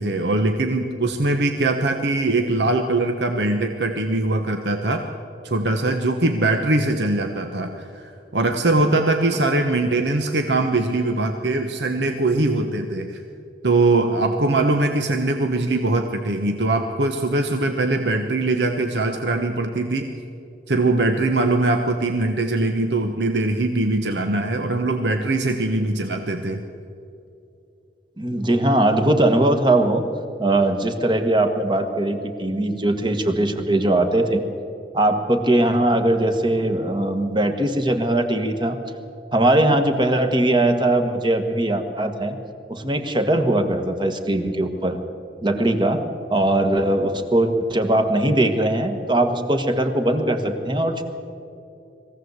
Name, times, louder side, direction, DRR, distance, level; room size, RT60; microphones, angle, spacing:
voice 1, 0.0-5.0 5.4-13.2 13.6-20.1 20.7-26.6, right 2 dB, 75° right, 5 dB, 1.1 m, -22 dB
voice 2, 28.2-30.0 30.4-34.4 34.9-38.8 39.3-42.4 42.7-45.0 45.4-46.0 46.3-51.0, right 1 dB, 25° right, 6 dB, 1.5 m, -20 dB
21.5 x 16.0 x 8.1 m, 2.6 s
head